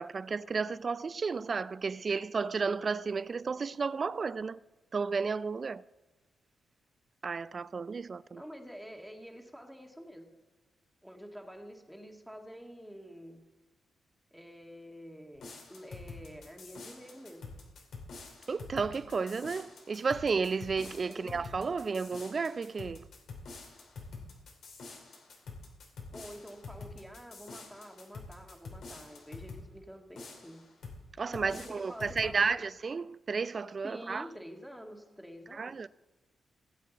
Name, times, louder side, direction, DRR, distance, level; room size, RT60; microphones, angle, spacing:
voice 1, 0.0-4.6 4.9-5.8 7.2-8.4 18.5-23.1 31.2-34.3 35.5-35.9, right 5 dB, 45° right, 0.4 m, -32 dB
voice 2, 8.3-10.4 11.0-13.5 14.3-17.5 21.1-21.4 26.1-30.7 31.2-32.7 33.8-35.9, equal, ahead, 1.9 m, -48 dB
sound 1, 15.4-29.7 30.2-31.0 31.3-32.4, left 4 dB, 75° left, 2.8 m, -47 dB
18.5 x 8.3 x 4.1 m
cardioid pair, 70°, 0 cm